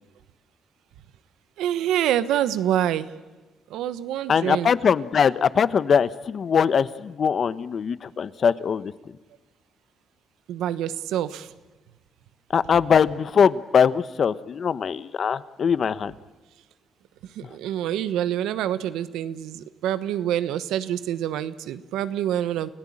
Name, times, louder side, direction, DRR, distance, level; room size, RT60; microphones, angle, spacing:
voice 1, 1.6-3.1 3.7-4.7 10.5-11.5 17.3-22.7, right 11 dB, 90° right, 13 dB, 1.1 m, -26 dB
voice 2, 4.3-8.9 12.5-16.1, left 7 dB, 50° left, 15 dB, 1.0 m, -21 dB
29.0 x 17.0 x 8.7 m, 1.2 s
cardioid pair, 90°, 0 cm